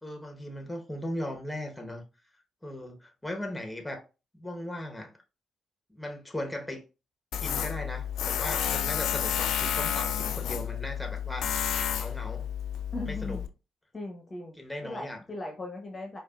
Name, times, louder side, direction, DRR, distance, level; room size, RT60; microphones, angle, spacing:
voice 1, 0.0-2.0 2.6-4.0 4.3-5.1 5.9-6.8 7.4-12.5 13.1-13.4 14.6-15.2, left 1 dB, 10° left, 1.1 m, -38 dB
Tools, 7.3-13.5, left 9 dB, 65° left, 0.4 m, -31 dB
voice 2, 12.9-13.4 13.9-14.6 14.8-16.2, left 2 dB, 30° left, 0.8 m, -38 dB
4.6 x 2.4 x 2.4 m
figure-of-eight pair, 40°, 0 cm